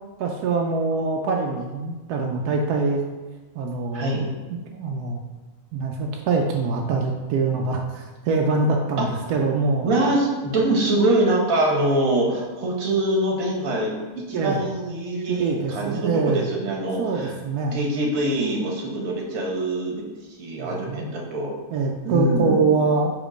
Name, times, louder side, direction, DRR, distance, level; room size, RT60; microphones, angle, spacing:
voice 1, 0.2-3.0 3.5-4.3 4.7-5.2 5.7-9.9 14.3-14.6 15.3-16.5 17.0-17.9 20.6-21.2 21.7-23.1, right 4 dB, 90° right, 1 dB, 1.1 m, -24 dB
voice 2, 3.9-4.3 9.0-9.1 9.8-17.3 17.7-20.0 20.4-21.6 22.0-22.8, right 1 dB, 65° right, -1 dB, 1.5 m, -24 dB
5.0 x 3.8 x 5.0 m, 1.2 s
omnidirectional pair, 1.6 m